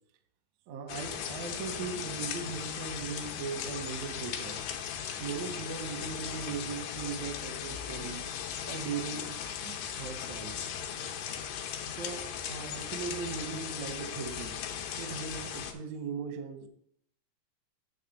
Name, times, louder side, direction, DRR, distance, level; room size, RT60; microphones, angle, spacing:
voice 1, 0.7-4.6 5.2-8.2 8.7-9.4 9.6-10.6 11.9-14.6 15.0-16.7, right 6 dB, 80° right, 7 dB, 1.6 m, -39 dB
sound 1, 0.9-15.7, left 8 dB, 90° left, 2.9 m, -38 dB
9.2 x 3.5 x 6.9 m, 0.69 s
omnidirectional pair, 4.6 m